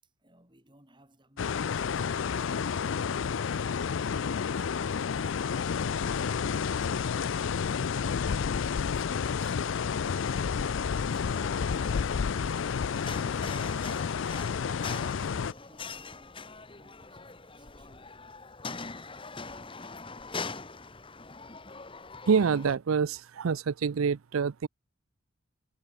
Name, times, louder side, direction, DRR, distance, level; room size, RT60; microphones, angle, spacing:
voice 1, 0.0-6.3 6.7-9.7 10.5-12.3 12.7-18.1 18.6-20.0 20.5-20.9, right 1 dB, 20° right, 6.8 m, -61 dB
sound 1, 1.4-15.5, left 6 dB, 65° left, 0.4 m, -30 dB
sound 2, 11.3-22.8, left 4 dB, 25° left, 1.6 m, -42 dB
voice 2, 22.3-24.7, right 6 dB, 90° right, 0.5 m, -26 dB
head